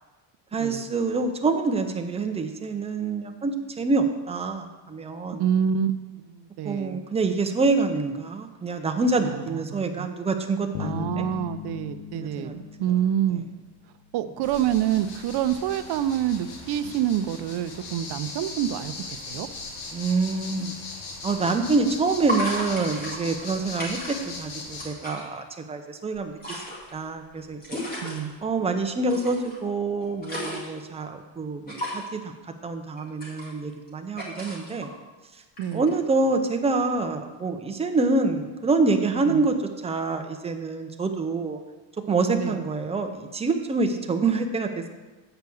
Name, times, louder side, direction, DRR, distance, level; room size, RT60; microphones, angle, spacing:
voice 1, 0.5-5.4 6.6-11.2 12.1-12.6 19.9-20.7 21.2-26.6 26.9-27.8 28.4-32.3 32.6-34.9 35.7-39.6 39.8-41.6 42.1-44.9, right 3 dB, 15° right, 5 dB, 0.5 m, -26 dB
voice 2, 5.4-7.0 9.2-10.1 10.8-13.4 14.1-19.5 28.0-28.3 35.6-35.9 39.2-39.4 42.3-42.6, right 10 dB, 65° right, 11 dB, 0.6 m, -27 dB
sound 1, 10.7-14.1, left 9 dB, 70° left, 0.7 m, -37 dB
sound 2, 14.4-24.9, left 3 dB, 85° left, 1.6 m, -39 dB
sound 3, 21.2-21.3 22.3-24.4 24.7-25.2 26.1-28.2 29.1-29.6 29.9-30.8 31.7-32.1 33.0-33.9 34.2-34.9 35.6-35.9, equal, 20° left, 2.2 m, -34 dB
8.0 x 4.8 x 6.9 m, 1.2 s
cardioid pair, 165°, 44 cm